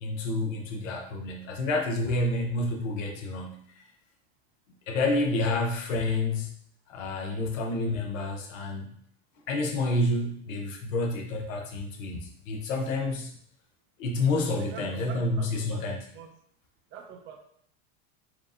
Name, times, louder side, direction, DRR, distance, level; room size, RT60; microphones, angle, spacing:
voice 1, 0.0-3.6 4.9-6.5 6.9-8.9 9.5-13.3 14.0-16.0, left 2 dB, 90° left, 1 dB, 0.9 m, -29 dB
voice 2, 14.5-15.9 16.1-16.3 16.9-17.4, right 7 dB, 30° right, 2 dB, 0.6 m, -45 dB
4.7 x 3.6 x 2.5 m, 0.65 s
supercardioid pair, 130°, 38 cm